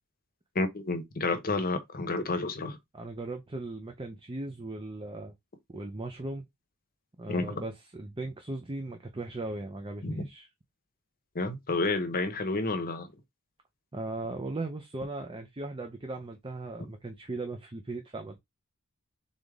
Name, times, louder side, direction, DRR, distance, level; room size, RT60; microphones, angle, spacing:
voice 1, 0.5-2.8 7.3-7.5 10.0-10.2 11.3-13.1, left 3 dB, 40° left, 0.9 m, -30 dB
voice 2, 2.9-5.3 5.7-6.5 7.2-10.5 13.9-18.4, right 2 dB, 25° right, 0.6 m, -38 dB
3.9 x 3.5 x 3.6 m
head